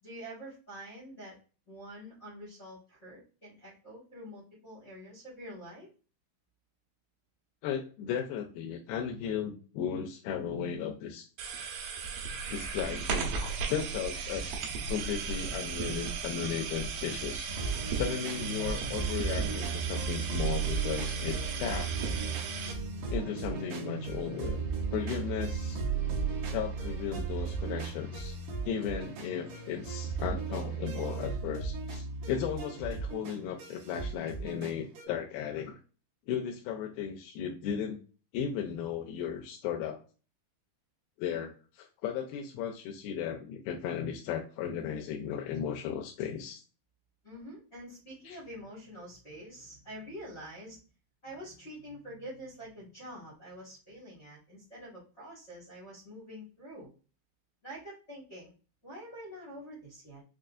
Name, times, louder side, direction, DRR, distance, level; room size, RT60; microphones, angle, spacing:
voice 1, 0.0-1.3 1.7-5.9 47.2-50.8 51.2-56.9 57.6-58.5 58.8-60.2, equal, 70° left, -7 dB, 0.6 m, -46 dB
voice 2, 7.6-11.3 12.5-14.6 14.9-17.5 17.9-21.9 23.1-24.6 24.9-25.8 26.5-28.4 28.6-35.8 36.3-38.0 38.3-40.0 41.2-46.6 48.3-48.4, left 8 dB, 90° left, 1 dB, 2.4 m, -35 dB
sound 1, 11.4-22.7, right 6 dB, 85° right, 2.6 m, -36 dB
sound 2, 17.5-35.0, right 5 dB, 70° right, 2.3 m, -35 dB
6.1 x 2.4 x 2.4 m, 0.36 s
omnidirectional pair, 4.2 m